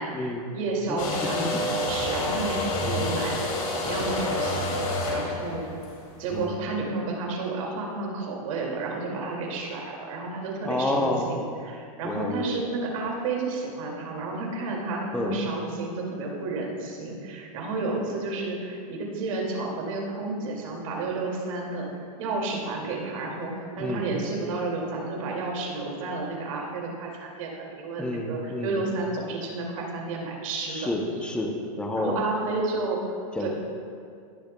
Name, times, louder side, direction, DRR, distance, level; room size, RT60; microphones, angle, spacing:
voice 1, 0.0-4.7 5.1-5.6 6.2-30.9 31.9-33.0 33.4-33.5, right 3 dB, 60° right, -1 dB, 2.2 m, -31 dB
voice 2, 0.9-1.7 2.8-3.1 6.3-6.5 10.6-11.2 12.0-12.4 15.1-15.4 23.8-24.1 28.0-28.8 30.7-31.5 31.8-32.2 33.4-33.5, left 2 dB, 5° left, 1 dB, 0.7 m, -29 dB
sound 1, 1.0-6.4, left 2 dB, 65° left, 2.3 m, -28 dB
18.5 x 7.0 x 2.2 m, 2.3 s
supercardioid pair, 155°, 19 cm